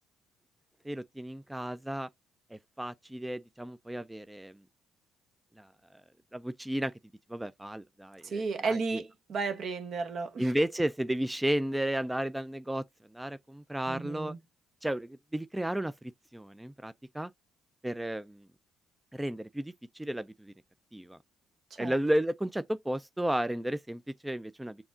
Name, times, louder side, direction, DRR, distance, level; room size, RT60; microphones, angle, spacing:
voice 1, 0.8-2.1 2.5-4.6 5.6-6.0 6.3-6.9 7.3-9.0 10.4-12.8 13.1-14.3 14.8-17.3 17.8-18.5 19.1-20.5 20.9-21.2 21.8-24.8, right 1 dB, 10° right, 0.3 m, -33 dB
voice 2, 8.2-10.5 13.9-14.4 21.8-21.9, right 4 dB, 55° right, 0.8 m, -33 dB
6.9 x 2.8 x 2.4 m
hypercardioid pair, 55°, 0 cm